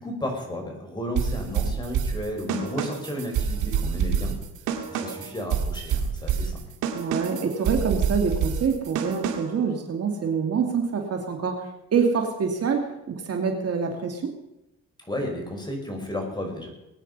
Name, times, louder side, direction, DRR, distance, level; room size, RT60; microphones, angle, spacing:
voice 1, 0.0-4.4 4.9-6.6 15.0-16.7, left 1 dB, 15° left, 2 dB, 5.5 m, -33 dB
sound 1, 1.2-9.6, right 7 dB, 85° right, 2.2 m, -27 dB
voice 2, 6.9-14.3, right 5 dB, 55° right, 4 dB, 2.5 m, -26 dB
21.5 x 9.2 x 5.5 m, 0.89 s
cardioid pair, 90°, 30 cm